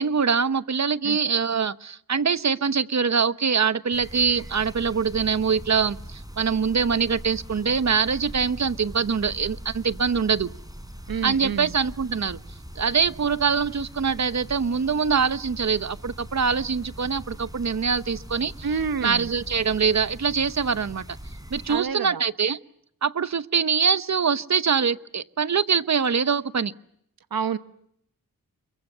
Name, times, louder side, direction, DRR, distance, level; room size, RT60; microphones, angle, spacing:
voice 1, 0.0-10.5 11.2-12.4 12.8-18.7 19.0-21.0 21.5-22.6 23.0-26.7, right 6 dB, 50° right, 1.0 m, -24 dB
sound 1, 3.9-21.8, equal, 10° right, 5.0 m, -41 dB
voice 2, 11.1-11.7 18.6-19.3 21.7-22.2 27.3-27.6, right 6 dB, 80° right, 1.2 m, -28 dB
29.0 x 23.0 x 6.9 m
wide cardioid pair, 90°, 35 cm